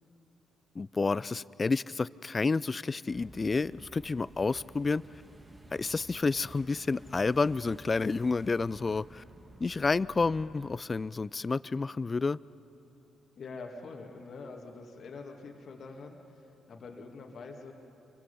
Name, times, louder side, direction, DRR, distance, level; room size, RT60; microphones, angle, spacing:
voice 1, 0.8-5.0 5.7-9.2 9.6-12.4, left 4 dB, 35° left, 21 dB, 0.4 m, -30 dB
sound 1, 3.1-10.8, right 1 dB, 20° right, 2.0 m, -52 dB
voice 2, 13.4-17.7, left 4 dB, 55° left, 2 dB, 2.2 m, -45 dB
28.0 x 24.0 x 5.4 m, 2.8 s
hypercardioid pair, 40°, 0 cm